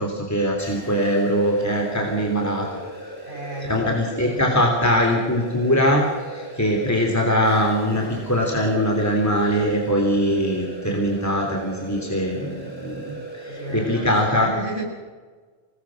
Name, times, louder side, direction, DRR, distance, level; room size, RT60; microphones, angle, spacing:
voice 1, 0.0-2.7 3.7-6.0 6.3-13.2 13.4-14.5, equal, 15° left, 0 dB, 3.5 m, -22 dB
sound 1, 0.6-14.3, right 1 dB, 10° right, 8.0 m, -38 dB
voice 2, 3.2-4.4 13.5-14.8, right 1 dB, 50° left, 0 dB, 7.4 m, -33 dB
27.5 x 19.0 x 6.5 m, 1.4 s
omnidirectional pair, 1.1 m